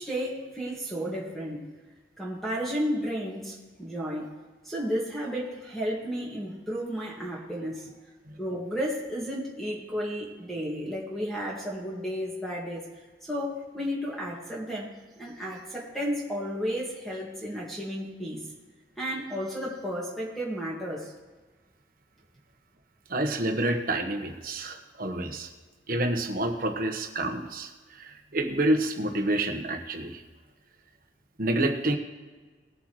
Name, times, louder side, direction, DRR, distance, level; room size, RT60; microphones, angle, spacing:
voice 1, 0.0-1.6 2.2-4.3 4.6-7.9 8.4-12.9 13.2-18.4 19.0-21.1, equal, ahead, -4 dB, 1.9 m, -33 dB
voice 2, 23.1-25.5 25.9-27.7 28.0-30.2 31.4-32.0, right 1 dB, 50° right, 5 dB, 1.2 m, -28 dB
19.5 x 7.9 x 3.2 m, 1.3 s
head